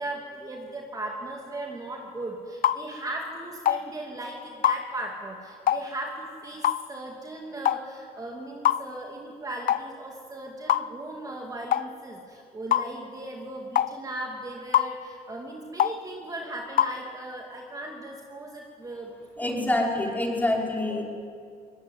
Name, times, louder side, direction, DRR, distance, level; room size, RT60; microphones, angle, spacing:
voice 1, 0.0-19.1 19.4-19.7, right 1 dB, 20° right, 0 dB, 2.8 m, -37 dB
sound 1, 2.6-2.8 3.6-3.8 4.6-4.8 5.7-5.8 6.6-6.8 7.6-7.8 8.6-8.8 9.7-9.9 10.7-10.9 11.7-11.9 12.7-12.9 13.7-13.9 14.7-14.9 15.8-16.0 16.8-17.0, left 11 dB, 55° left, 0.7 m, -22 dB
voice 2, 19.4-21.0, left 1 dB, 10° left, -1 dB, 5.2 m, -26 dB
23.0 x 19.5 x 9.5 m, 2.4 s
cardioid pair, 110°, 17 cm